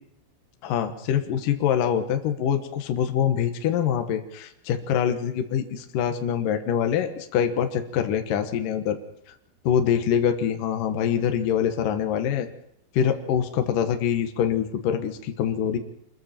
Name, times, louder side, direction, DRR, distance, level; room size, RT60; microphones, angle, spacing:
voice 1, 0.6-9.0 9.6-12.5 12.9-15.8, left 8 dB, 70° left, 6 dB, 2.0 m, -24 dB
27.5 x 21.5 x 4.5 m, 0.75 s
omnidirectional pair, 5.9 m